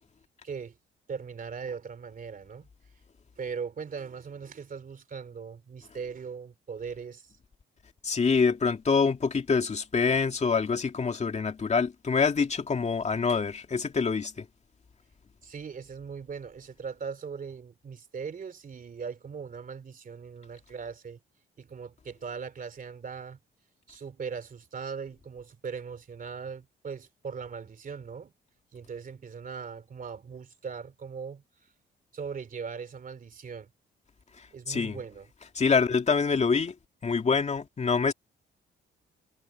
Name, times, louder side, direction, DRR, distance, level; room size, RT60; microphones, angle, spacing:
voice 1, 0.4-0.8 1.1-2.7 3.4-7.4 15.4-21.2 21.6-23.4 23.9-28.3 28.7-31.4 32.1-33.7 34.5-35.3, right 6 dB, 45° right, 3.1 m, -39 dB
voice 2, 8.0-14.5 34.7-35.0 35.6-36.7 37.0-38.1, left 5 dB, 35° left, 2.5 m, -25 dB
cardioid pair, 90°, 20 cm